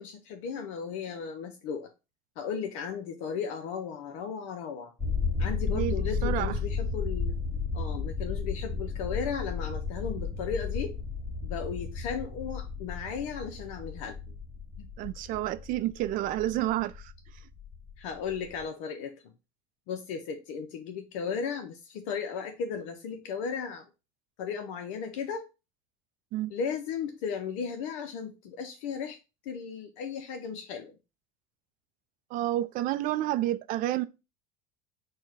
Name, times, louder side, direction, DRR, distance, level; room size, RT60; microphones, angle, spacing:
voice 1, 0.0-1.9 2.4-4.9 5.4-7.3 7.7-11.0 11.4-14.2 14.8-14.9 18.0-19.3 19.9-23.8 24.4-25.4 26.5-29.2 29.4-31.0, left 6 dB, 70° left, 0.6 m, -35 dB
sound 1, 5.0-18.6, left 4 dB, 15° left, 1.9 m, -33 dB
voice 2, 6.2-6.6 15.0-17.1 26.3-26.5 32.3-34.0, right 14 dB, 50° right, 0.4 m, -29 dB
4.5 x 2.2 x 4.6 m
supercardioid pair, 95°, 17 cm